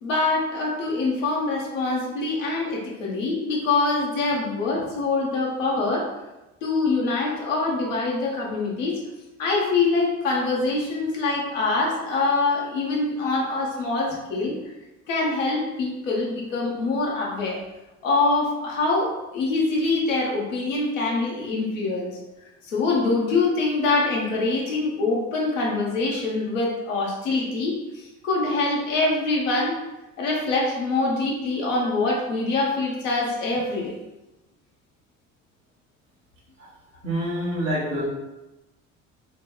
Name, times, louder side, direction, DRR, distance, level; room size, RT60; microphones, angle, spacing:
voice 1, 0.0-6.1 6.6-9.0 9.4-14.5 15.1-17.6 18.0-22.2 22.6-29.8 30.2-33.9, left 3 dB, 80° left, -3 dB, 1.0 m, -24 dB
voice 2, 37.0-38.0, equal, 90° right, -7 dB, 1.3 m, -26 dB
4.0 x 2.2 x 3.8 m, 1.0 s
figure-of-eight pair, 55°, 38 cm